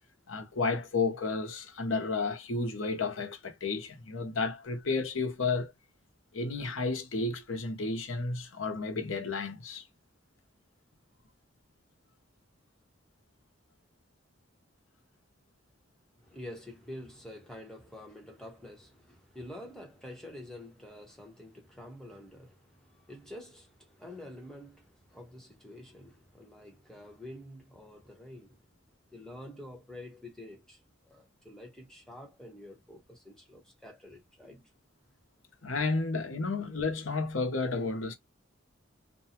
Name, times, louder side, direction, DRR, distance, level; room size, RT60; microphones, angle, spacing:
voice 1, 0.3-5.7 6.3-9.8 35.6-38.1, left 3 dB, 85° left, 0.8 m, -32 dB
voice 2, 16.2-28.6 29.1-34.7, left 1 dB, 5° left, 1.0 m, -48 dB
2.6 x 2.3 x 2.8 m
head